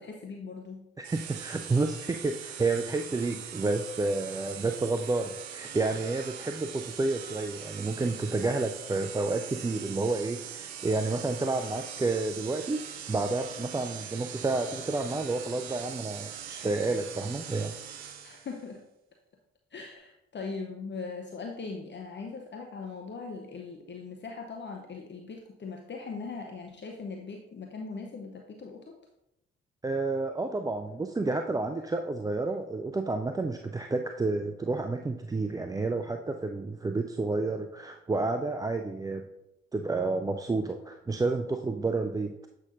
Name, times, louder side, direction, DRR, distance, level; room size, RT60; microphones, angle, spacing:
voice 1, 0.0-0.9 18.2-18.8 19.7-29.0, left 4 dB, 35° left, 2 dB, 0.8 m, -40 dB
voice 2, 1.0-17.8 29.8-39.3 39.7-42.5, right 3 dB, 10° right, 5 dB, 0.4 m, -30 dB
sound 1, 1.0-18.6, right 9 dB, 85° right, 0.5 m, -42 dB
8.1 x 5.5 x 2.6 m, 0.86 s
hypercardioid pair, 40°, 31 cm